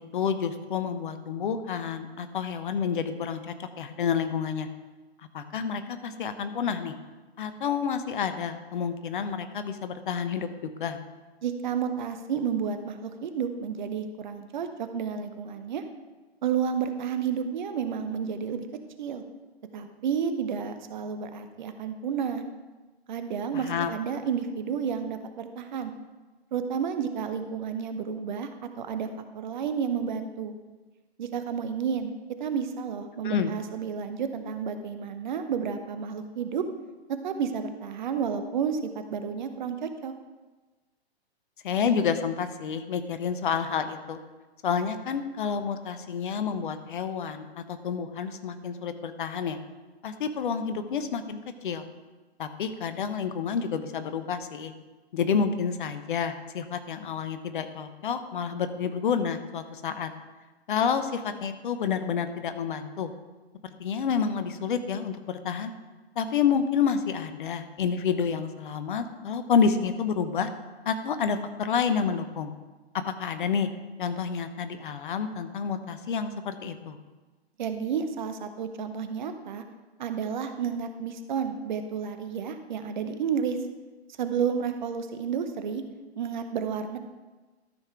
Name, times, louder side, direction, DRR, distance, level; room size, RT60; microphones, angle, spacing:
voice 1, 0.0-4.7 5.3-6.9 7.4-11.0 23.5-23.9 33.2-33.5 41.6-44.2 44.6-49.6 50.0-51.8 52.4-54.7 55.1-60.1 60.7-63.1 63.8-65.7 66.2-70.5 70.8-72.5 72.9-73.7 74.0-77.0, left 6 dB, 50° left, 10 dB, 0.9 m, -29 dB
voice 2, 11.4-15.8 16.4-18.6 19.0-19.2 19.7-22.4 23.1-25.9 26.5-28.5 28.8-30.5 31.2-32.1 32.4-36.6 37.2-40.1 77.6-79.6 80.0-83.6 84.2-85.8 86.2-87.0, right 7 dB, 45° right, 8 dB, 0.9 m, -31 dB
13.0 x 5.8 x 4.5 m, 1.2 s
figure-of-eight pair, 125°, 32 cm